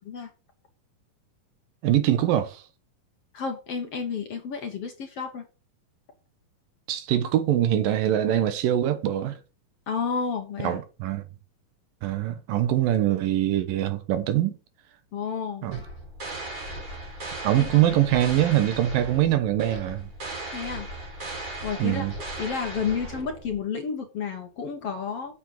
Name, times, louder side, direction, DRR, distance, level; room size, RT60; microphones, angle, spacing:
voice 1, 1.8-2.6 6.9-9.4 10.6-11.2 12.0-14.5 15.6-15.8 17.4-20.1 21.8-22.1, right 12 dB, 75° right, 2.8 m, -23 dB
voice 2, 3.3-5.5 9.9-10.8 15.1-15.7 17.6-18.3 20.5-20.9 21.6-22.1 22.4-25.3, left 6 dB, 55° left, 2.0 m, -31 dB
sound 1, 15.7-23.6, right 1 dB, 35° right, 5.2 m, -37 dB
7.8 x 7.6 x 6.6 m
omnidirectional pair, 4.1 m